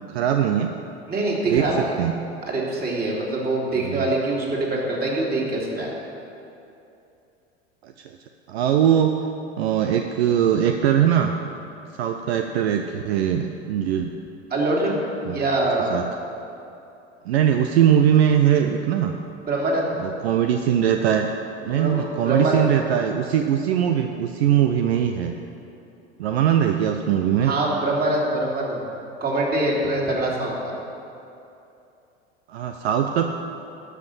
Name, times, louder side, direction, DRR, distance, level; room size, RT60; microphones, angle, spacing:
voice 1, 0.1-0.7 1.5-1.6 2.0-2.1 3.8-4.0 7.8-7.9 8.5-9.2 9.6-11.3 12.0-14.1 15.3-15.4 15.9-16.0 17.3-19.1 20.0-21.3 21.6-25.3 26.2-27.5 32.5-33.2, right 9 dB, 70° right, 5 dB, 0.7 m, -21 dB
voice 2, 1.1-1.9 2.5-5.9 14.5-15.0 15.2-15.9 19.4-19.9 21.6-22.7 27.4-28.9 29.2-30.8, right 2 dB, 30° right, -3 dB, 2.9 m, -24 dB
12.0 x 5.8 x 7.3 m, 2.8 s
hypercardioid pair, 80°, 33 cm